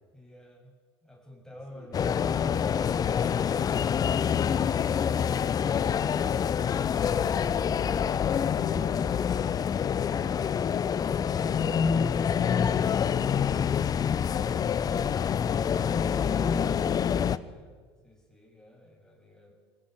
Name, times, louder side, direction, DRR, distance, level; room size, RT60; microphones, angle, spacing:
voice 1, 0.1-0.7 1.0-2.8 17.2-17.7 18.0-19.5, left 1 dB, 5° left, 0 dB, 7.0 m, -50 dB
voice 2, 1.7-1.9, left 4 dB, 55° left, 1 dB, 4.9 m, -49 dB
sound 1, 1.9-17.4, left 7 dB, 25° left, 0.7 m, -26 dB
23.5 x 15.0 x 8.0 m, 1.5 s
figure-of-eight pair, 70°, 14 cm